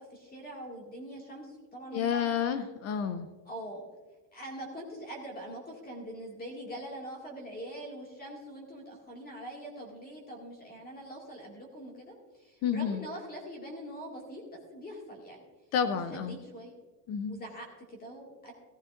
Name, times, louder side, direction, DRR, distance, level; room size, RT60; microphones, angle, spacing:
voice 1, 0.0-2.3 3.5-3.9 4.3-15.4 16.0-16.7 17.3-18.5, right 1 dB, 20° left, 0 dB, 2.0 m, -43 dB
voice 2, 1.9-3.3 12.6-13.1 15.7-16.4 17.1-17.4, left 7 dB, 35° left, 11 dB, 0.4 m, -30 dB
15.0 x 15.0 x 2.5 m, 1.2 s
cardioid pair, 170°, 47 cm